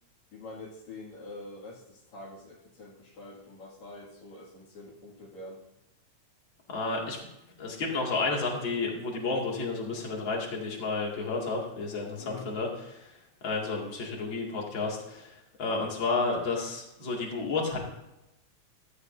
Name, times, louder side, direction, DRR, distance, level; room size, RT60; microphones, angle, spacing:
voice 1, 0.3-5.6 12.2-12.5, left 2 dB, 70° left, -5 dB, 3.5 m, -45 dB
voice 2, 6.7-7.2 7.6-13.1 13.4-17.8, left 3 dB, 40° left, -2 dB, 2.9 m, -31 dB
16.0 x 13.0 x 2.7 m, 0.92 s
omnidirectional pair, 3.4 m